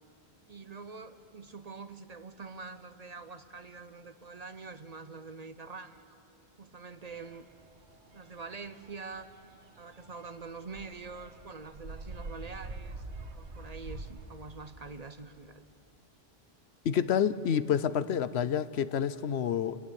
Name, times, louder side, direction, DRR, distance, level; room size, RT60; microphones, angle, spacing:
voice 1, 0.5-6.0 6.6-7.5 8.1-9.3 9.8-13.0 13.3-15.6, right 4 dB, 40° right, 11 dB, 0.8 m, -45 dB
sound 1, 7.0-14.7, right 3 dB, 90° right, 1.8 m, -46 dB
voice 2, 16.8-19.8, left 8 dB, 80° left, 15 dB, 1.0 m, -28 dB
28.5 x 16.0 x 9.8 m, 2.7 s
omnidirectional pair, 1.1 m